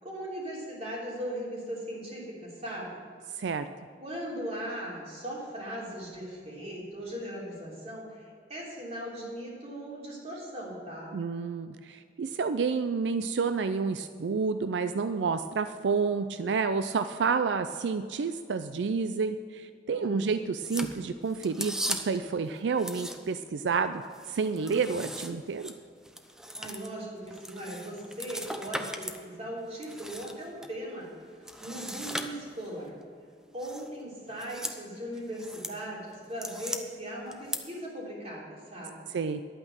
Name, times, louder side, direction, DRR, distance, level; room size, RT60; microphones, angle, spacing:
voice 1, 0.0-3.0 4.0-11.1 19.9-20.3 26.5-32.9 33.5-39.0, equal, 40° right, -4 dB, 3.5 m, -39 dB
voice 2, 3.4-3.7 11.1-24.0 24.3-25.7 39.1-39.4, right 5 dB, 90° right, 10 dB, 0.4 m, -29 dB
sound 1, 20.6-22.3 22.8-23.5 23.8-29.2 29.6-30.7 31.4-32.8 33.6-33.9 34.3-34.8 35.1-35.8 36.1-36.8 37.3-37.6, equal, 5° right, 0.6 m, -38 dB
11.0 x 8.8 x 6.2 m, 2.2 s
head